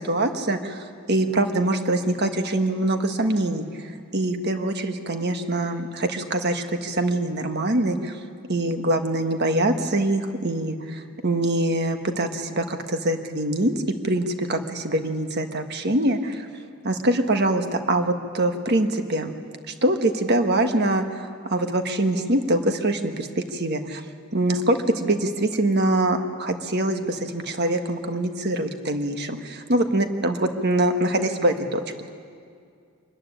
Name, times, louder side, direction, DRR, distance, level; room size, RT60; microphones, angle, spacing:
voice 1, 0.0-8.2 8.5-13.7 14.0-16.5 16.8-19.3 19.7-24.0 24.3-32.1, right 1 dB, 50° right, 6 dB, 1.4 m, -24 dB
24.5 x 14.5 x 10.0 m, 2.3 s
head